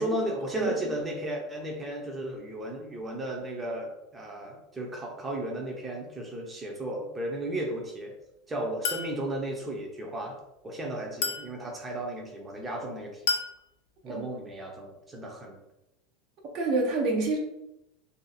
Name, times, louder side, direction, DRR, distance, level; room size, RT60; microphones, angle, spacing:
voice 1, 0.0-8.1 8.5-10.4 10.6-13.2 14.0-15.6, right 1 dB, 20° right, 0 dB, 0.7 m, -34 dB
voice 2, 0.5-0.9 14.1-14.2 16.5-17.4, right 3 dB, 50° right, 1 dB, 0.7 m, -27 dB
Chink clink, 8.8-9.2 11.2-11.5 13.3-13.6, left 5 dB, 75° left, 0.5 m, -29 dB
2.7 x 2.3 x 4.0 m, 0.88 s
supercardioid pair, 120°, 0 cm